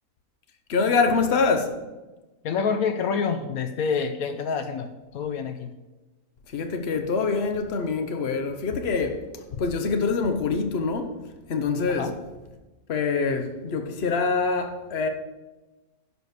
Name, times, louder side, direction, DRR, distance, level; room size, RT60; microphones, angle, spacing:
voice 1, 0.7-1.7 6.5-11.2 11.5-12.1 12.9-15.1, left 4 dB, 50° left, 1.1 m, -25 dB
voice 2, 2.4-5.7 11.9-12.1, left 6 dB, 80° left, 1.1 m, -27 dB
11.0 x 5.1 x 6.5 m
omnidirectional pair, 1.6 m